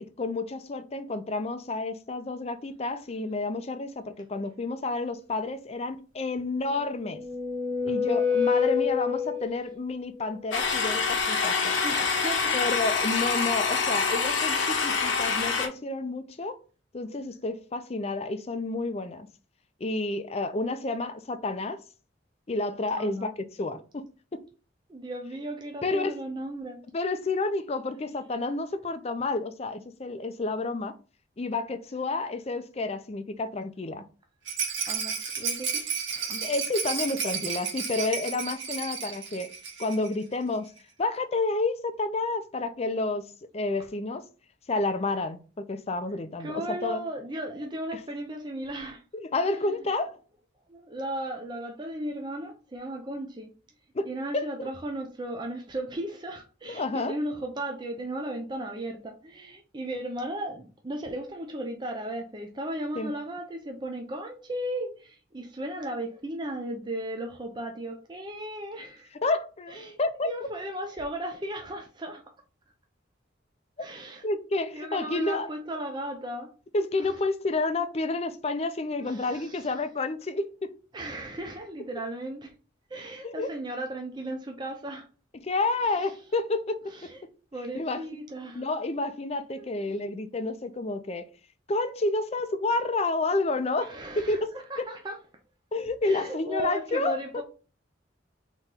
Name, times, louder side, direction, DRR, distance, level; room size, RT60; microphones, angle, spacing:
voice 1, 0.0-7.2 7.8-11.8 12.5-16.6 16.9-19.3 19.8-21.8 22.5-23.3 23.6-24.1 24.3-24.4 25.8-26.2 26.9-30.9 31.4-34.0 36.3-39.5 39.8-40.7 41.0-44.2 44.7-47.0 47.9-48.0 49.1-50.2 53.9-54.5 56.7-57.1 63.0-63.1 69.2-70.3 74.2-75.5 76.7-80.7 83.2-83.5 85.4-87.1 87.7-88.0 88.5-91.3 91.7-94.4 94.8-94.9 95.7-97.4, left 3 dB, 35° left, 0.5 m, -30 dB
sound 1, 6.7-9.8, left 6 dB, 40° right, 1.5 m, -27 dB
sound 2, 10.5-15.7, left 5 dB, 90° left, 1.1 m, -26 dB
voice 2, 11.7-12.6 13.0-13.2 23.0-23.3 24.9-26.8 34.9-35.8 36.1-36.4 46.4-49.0 49.5-49.8 50.7-53.5 54.0-69.1 69.7-72.2 73.8-74.2 74.5-76.5 77.0-77.1 79.0-79.8 80.9-82.5 82.9-85.1 85.8-86.1 86.8-87.2 87.5-88.7 89.6-90.0 93.8-95.2 96.0-97.4, right 1 dB, 25° right, 0.5 m, -36 dB
Rattle, 34.4-40.1 40.4-40.5 40.8-40.9, right 6 dB, 80° right, 1.6 m, -32 dB
4.2 x 3.0 x 3.7 m
head